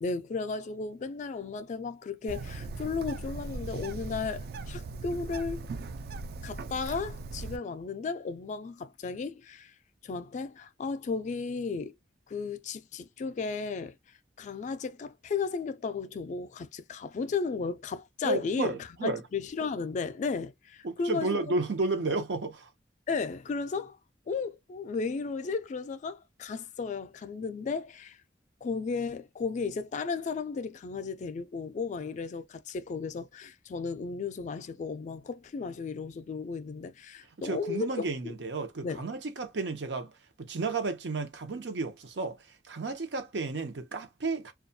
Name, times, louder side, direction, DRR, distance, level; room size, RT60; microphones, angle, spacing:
voice 1, 0.0-5.7 6.4-9.7 10.0-11.9 12.3-14.0 14.4-18.7 19.0-21.4 23.1-24.0 24.3-28.2 28.6-38.3 38.8-39.1, left 4 dB, 45° left, 0.3 m, -34 dB
Bird, 2.3-7.6, right 3 dB, 60° right, 0.3 m, -39 dB
voice 2, 18.2-19.2 20.8-22.7 37.4-40.1 40.4-44.5, right 3 dB, 85° right, 0.7 m, -32 dB
2.3 x 2.1 x 2.6 m
head